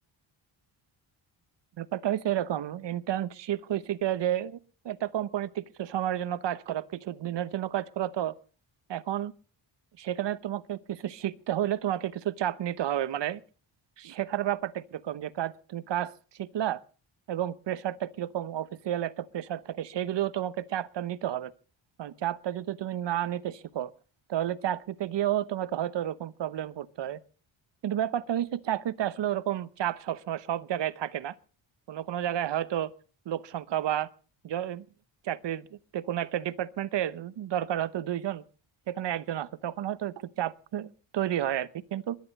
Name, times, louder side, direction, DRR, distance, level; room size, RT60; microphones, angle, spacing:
voice 1, 1.8-4.6 4.8-8.3 8.9-9.3 10.0-13.4 14.0-16.1 16.4-16.8 17.3-21.5 22.0-23.9 24.3-27.2 27.8-31.3 31.9-32.9 33.3-34.1 34.4-34.8 35.2-38.4 38.9-42.2, right 11 dB, 60° right, 1.0 m, -31 dB
21.0 x 10.5 x 5.3 m
wide cardioid pair, 165°, 48 cm